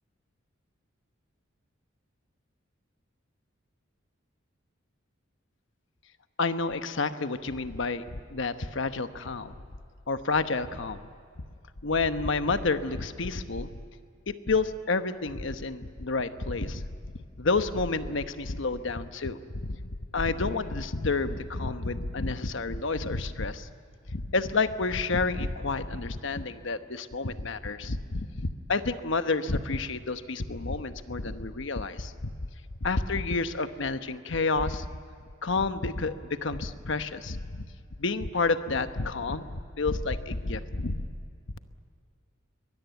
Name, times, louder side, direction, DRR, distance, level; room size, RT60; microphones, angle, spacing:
voice 1, 6.4-8.0 8.3-9.5 10.1-11.0 11.8-13.7 14.3-16.8 17.4-19.8 20.1-23.7 24.1-32.3 32.8-34.9 35.4-36.1 36.4-37.7 38.0-41.0, left 3 dB, 65° left, 10 dB, 1.0 m, -29 dB
23.0 x 21.0 x 9.2 m, 2.3 s
head